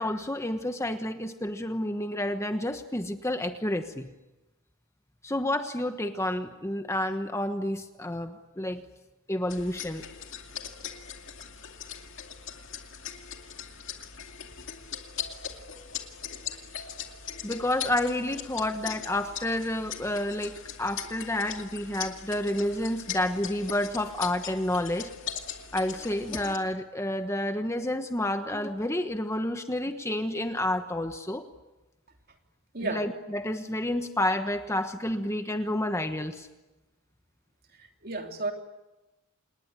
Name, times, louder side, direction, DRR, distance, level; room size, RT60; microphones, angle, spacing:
voice 1, 0.0-4.1 5.2-8.8 9.3-10.0 17.4-25.1 25.7-31.4 32.8-36.5, left 1 dB, 15° left, 7 dB, 1.2 m, -30 dB
sound 1, 9.5-26.6, left 8 dB, 60° left, 2.4 m, -40 dB
voice 2, 32.7-33.1 37.8-38.5, right 2 dB, 45° right, 3 dB, 3.2 m, -33 dB
27.5 x 20.5 x 9.7 m, 1.1 s
head